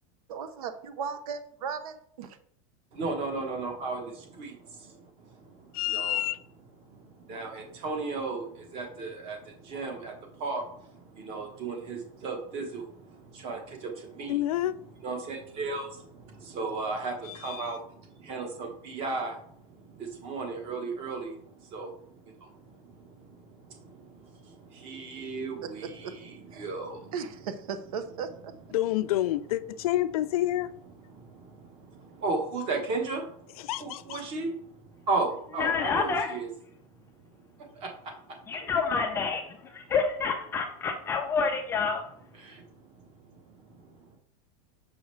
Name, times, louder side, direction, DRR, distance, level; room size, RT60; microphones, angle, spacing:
voice 1, 0.3-2.4 25.6-25.7 26.0-26.1 26.5-26.6 27.1-28.5, right 6 dB, 80° right, 0.8 m, -36 dB
voice 2, 2.9-6.2 6.8-14.4 15.0-27.2 31.1-38.7 42.3-44.2, right 3 dB, 30° right, 1.1 m, -36 dB
voice 3, 5.7-6.4 14.3-14.7 17.3-17.7 28.7-30.7 33.6-34.2, left 14 dB, 80° left, 0.4 m, -28 dB
voice 4, 35.6-36.4 38.5-42.0, left 5 dB, 15° left, 0.3 m, -28 dB
6.1 x 4.9 x 3.2 m
supercardioid pair, 170°, 18 cm